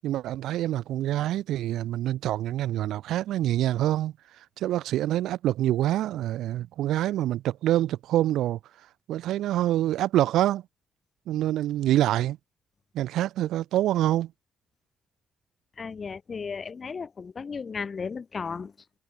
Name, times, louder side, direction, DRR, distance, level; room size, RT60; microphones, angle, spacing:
voice 1, 0.0-4.1 4.6-8.6 9.1-10.6 11.3-12.4 12.9-14.3, right 13 dB, 85° right, 0.8 m, -26 dB
voice 2, 15.8-18.7, left 5 dB, 40° left, 4.8 m, -35 dB
cardioid pair, 90°, 0 cm